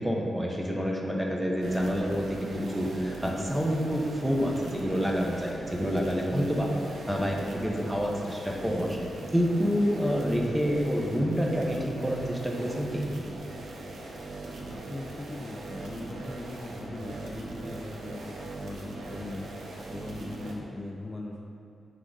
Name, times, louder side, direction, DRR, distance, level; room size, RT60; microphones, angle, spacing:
voice 1, 0.0-6.8 7.1-9.1 9.3-13.0, equal, 5° right, -1 dB, 0.9 m, -28 dB
sound 1, 1.6-20.5, right 2 dB, 90° right, 1.0 m, -40 dB
voice 2, 14.7-19.5 19.9-21.4, left 2 dB, 30° left, 0 dB, 0.5 m, -39 dB
9.9 x 3.7 x 3.9 m, 2.6 s
wide cardioid pair, 115°, 0 cm